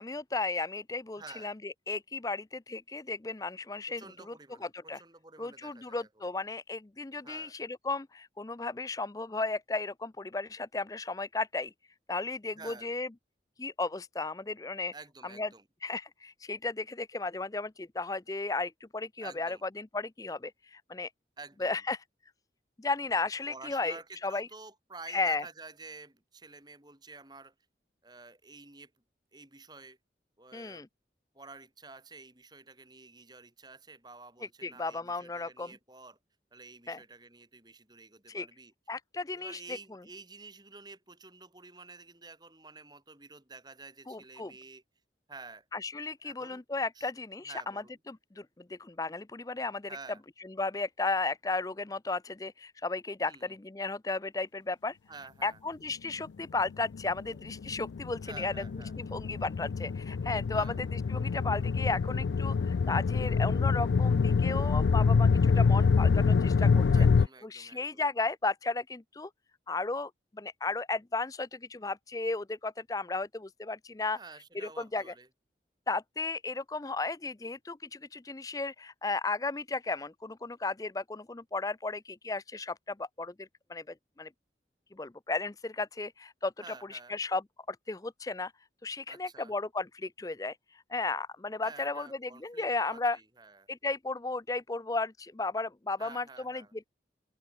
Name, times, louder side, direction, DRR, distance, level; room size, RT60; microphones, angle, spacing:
voice 1, 0.0-4.0 4.3-4.4 4.7-5.0 5.4-11.7 12.1-13.1 13.6-14.9 15.4-15.5 15.8-21.1 21.6-22.0 22.8-24.5 25.1-25.4 30.5-30.9 34.6-35.7 36.9-37.0 38.3-38.5 38.9-39.6 44.1-44.5 45.7-47.5 48.1-48.4 48.7-49.9 50.6-55.0 55.4-58.5 59.0-66.9 67.5-69.3 69.7-70.1 70.4-74.2 74.6-75.0 75.9-84.3 85.0-87.4 87.7-88.5 88.8-93.2 93.7-96.6, left 3 dB, 20° left, 0.4 m, -34 dB
voice 2, 1.2-1.5 3.9-6.2 7.2-7.5 12.5-12.9 14.9-15.7 19.2-19.6 21.4-21.8 23.5-27.5 28.0-28.9 29.3-30.0 30.4-30.8 31.3-36.2 36.5-38.7 39.3-44.8 45.3-45.7 46.2-46.6 46.9-47.1 47.4-48.0 49.9-50.2 53.2-53.5 55.1-55.6 58.3-58.9 60.5-60.8 66.9-68.0 74.1-75.3 86.6-87.2 89.1-89.5 91.6-93.7 96.0-96.7, right 3 dB, 25° right, 4.6 m, -50 dB
sound 1, 56.9-67.3, left 5 dB, 85° left, 0.4 m, -26 dB
head